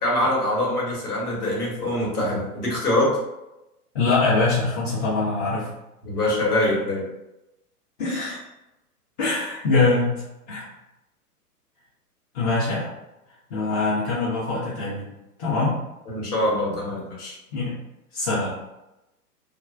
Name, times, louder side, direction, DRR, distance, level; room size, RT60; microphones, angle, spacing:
voice 1, 0.0-3.2 6.0-7.1 16.1-17.4, left 1 dB, 75° left, -5 dB, 1.3 m, -24 dB
voice 2, 3.9-5.7 8.0-8.4 9.2-10.1 10.5-10.7 12.3-12.9 13.5-15.1 15.4-15.7 17.5-17.8 18.1-18.6, left 3 dB, 25° left, -11 dB, 0.7 m, -23 dB
2.3 x 2.2 x 2.4 m, 0.94 s
figure-of-eight pair, 110°, 46 cm